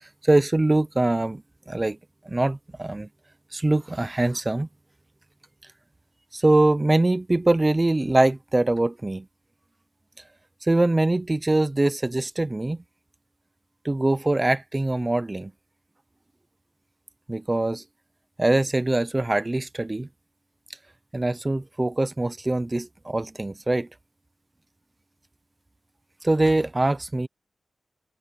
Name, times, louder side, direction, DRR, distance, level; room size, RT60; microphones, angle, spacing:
voice 1, 0.0-2.0 2.2-3.1 3.5-4.7 6.3-9.3 10.6-12.8 13.8-15.5 17.3-17.8 18.4-20.1 21.1-23.9 26.2-27.3, right 2 dB, 15° right, 0.5 m, -23 dB
wide cardioid pair, 150°, 0 cm